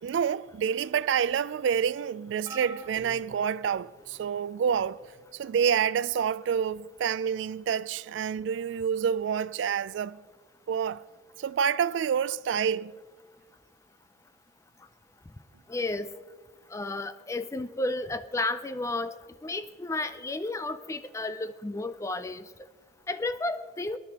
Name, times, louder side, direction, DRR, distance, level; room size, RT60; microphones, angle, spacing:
voice 1, 0.0-5.0 5.3-10.2 10.7-11.0 11.4-13.0, right 7 dB, 90° right, 0.3 m, -28 dB
sound 1, 2.5-4.3 5.0-5.3 6.5-6.6, right 2 dB, 20° right, 1.1 m, -47 dB
voice 2, 15.7-16.1 16.7-22.5 23.1-24.0, left 2 dB, 15° left, 0.4 m, -32 dB
21.5 x 11.0 x 2.9 m
head